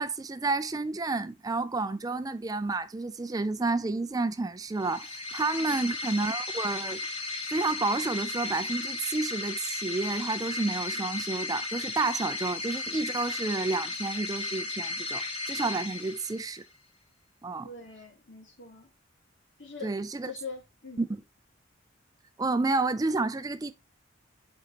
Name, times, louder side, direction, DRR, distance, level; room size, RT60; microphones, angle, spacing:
voice 1, 0.0-7.0 7.5-16.6 17.4-17.7 19.8-20.3 21.0-21.2 22.4-23.7, right 3 dB, 20° right, 0.4 m, -30 dB
sound 1, 4.7-16.7, left 3 dB, 30° left, 1.5 m, -35 dB
voice 2, 5.6-5.9 17.6-18.9 19.6-20.0 20.2-21.1, left 4 dB, 70° left, 2.7 m, -43 dB
7.5 x 4.5 x 2.8 m
head